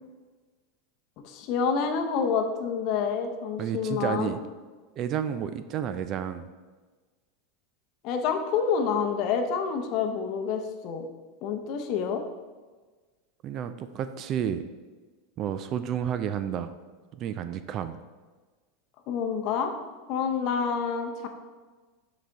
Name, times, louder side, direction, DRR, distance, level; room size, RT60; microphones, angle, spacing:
voice 1, 1.2-4.4 8.0-11.0 11.4-12.2 19.1-19.7 20.1-21.3, left 6 dB, 45° left, 5 dB, 0.7 m, -28 dB
voice 2, 3.6-4.4 5.0-6.5 13.4-14.6 15.4-16.7 17.1-18.0, right 9 dB, 35° right, 10 dB, 0.3 m, -31 dB
6.5 x 5.0 x 3.4 m, 1.3 s
supercardioid pair, 145°, 0 cm